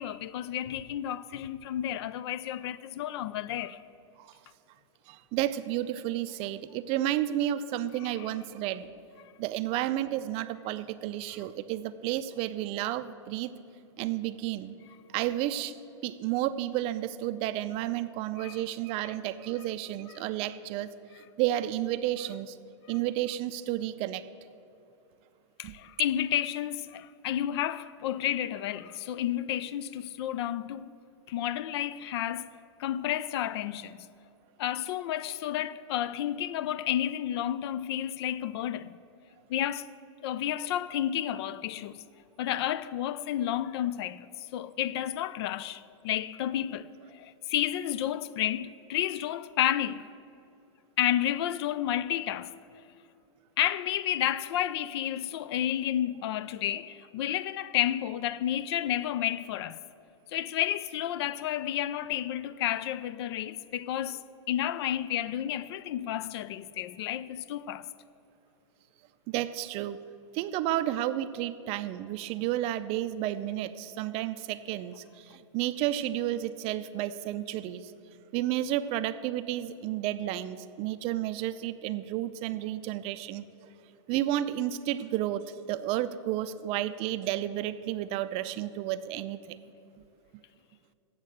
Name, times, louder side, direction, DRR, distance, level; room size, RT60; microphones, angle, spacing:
voice 1, 0.0-3.8 8.2-8.3 18.4-18.6 25.6-30.9 31.3-32.5 32.8-34.1 34.6-38.9 39.5-39.9 40.2-42.0 42.4-50.1 51.0-52.5 53.6-59.8 60.3-64.2 64.5-67.9, left 11 dB, 55° left, 0.4 m, -31 dB
voice 2, 5.1-8.9 9.4-13.5 14.0-14.8 15.1-15.8 16.0-20.9 21.4-22.6 22.9-24.3 25.6-25.7 69.3-70.0 70.3-77.9 78.3-83.7 84.1-89.6, right 13 dB, 40° right, 0.4 m, -31 dB
8.4 x 7.3 x 7.8 m
hypercardioid pair, 105°, 16 cm